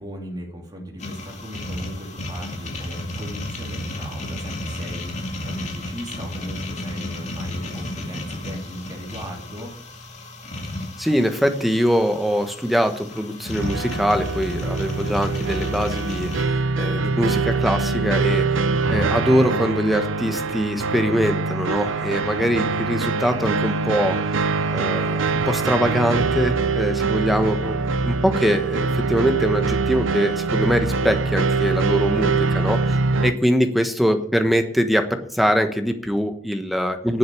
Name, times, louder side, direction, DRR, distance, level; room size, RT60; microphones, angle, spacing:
voice 1, 0.0-9.7, equal, 20° right, -2 dB, 3.1 m, -37 dB
sound 1, 1.0-16.4, left 1 dB, 35° left, 2.1 m, -33 dB
voice 2, 11.0-24.5 24.7-33.0 33.2-37.2, equal, ahead, 6 dB, 1.2 m, -23 dB
sound 2, 13.6-33.3, right 4 dB, 80° right, 0.8 m, -23 dB
10.0 x 7.9 x 8.6 m, 0.65 s
head